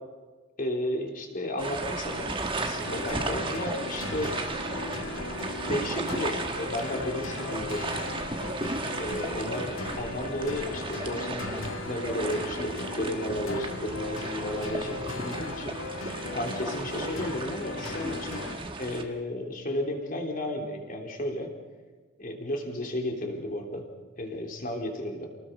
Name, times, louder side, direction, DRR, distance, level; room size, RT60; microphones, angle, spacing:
voice 1, 0.6-4.4 5.7-8.0 9.0-15.8 16.3-18.5 18.8-21.5 22.2-23.9 24.2-25.3, left 1 dB, 40° left, 2 dB, 3.4 m, -33 dB
sound 1, 1.6-19.0, right 2 dB, 25° right, 1.4 m, -35 dB
sound 2, 2.7-18.6, left 3 dB, 75° left, 1.9 m, -37 dB
28.5 x 19.0 x 5.4 m, 1.4 s
head